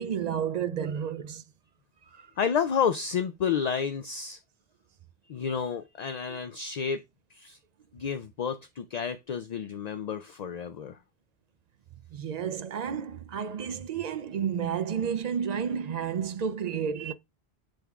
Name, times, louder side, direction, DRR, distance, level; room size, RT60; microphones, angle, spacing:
voice 1, 0.0-1.4 2.2-2.3 6.3-6.4 12.1-17.1, right 7 dB, 55° right, 0.5 m, -31 dB
voice 2, 2.4-4.4 5.3-7.0 7.3-7.6 7.9-11.0, left 7 dB, 55° left, 0.5 m, -30 dB
7.7 x 3.6 x 3.5 m
omnidirectional pair, 1.1 m